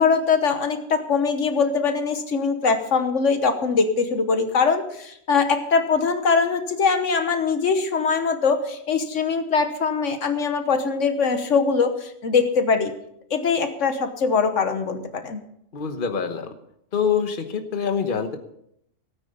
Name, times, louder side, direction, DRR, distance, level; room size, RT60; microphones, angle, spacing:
voice 1, 0.0-12.9 13.3-15.4, left 5 dB, 70° left, 8 dB, 1.4 m, -22 dB
voice 2, 15.7-16.5 16.9-18.4, left 6 dB, 45° left, 7 dB, 1.2 m, -25 dB
17.0 x 9.3 x 5.4 m, 0.74 s
omnidirectional pair, 1.4 m